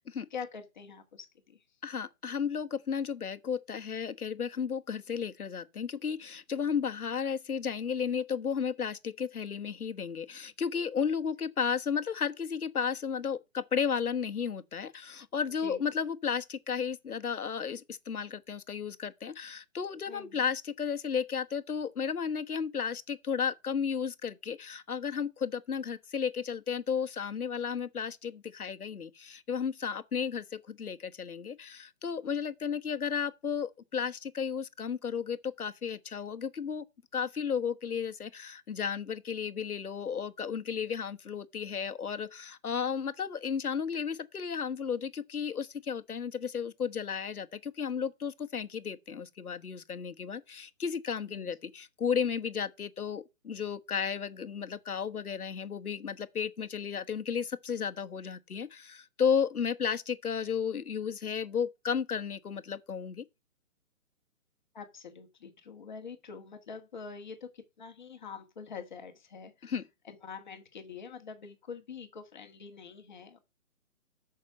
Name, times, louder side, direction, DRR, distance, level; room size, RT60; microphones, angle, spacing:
voice 1, 0.3-1.6 15.6-15.8 20.1-20.5 51.3-51.5 64.7-69.7 70.0-73.4, left 6 dB, 30° left, 1.9 m, -45 dB
voice 2, 1.8-36.8 37.1-63.2 69.6-69.8, left 7 dB, 90° left, 1.5 m, -33 dB
8.7 x 6.4 x 5.5 m
hypercardioid pair, 170°, 43 cm